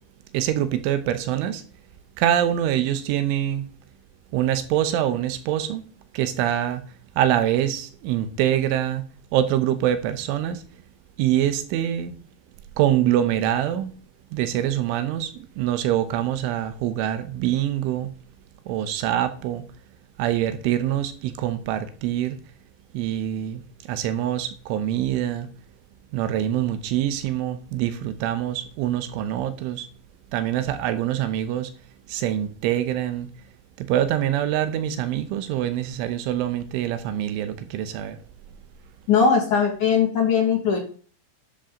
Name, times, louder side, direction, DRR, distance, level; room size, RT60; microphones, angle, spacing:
voice 1, 0.3-1.6 2.2-3.7 4.3-5.8 6.1-6.8 7.2-9.1 9.3-10.6 11.2-12.2 12.8-14.0 14.3-18.1 18.7-19.7 20.2-22.4 22.9-23.6 23.9-25.5 26.1-29.9 30.3-31.7 32.1-33.3 33.8-38.2, right 11 dB, 85° right, 3.5 m, -24 dB
voice 2, 39.1-40.8, left 6 dB, 50° left, 2.8 m, -19 dB
11.5 x 10.5 x 3.9 m
omnidirectional pair, 5.4 m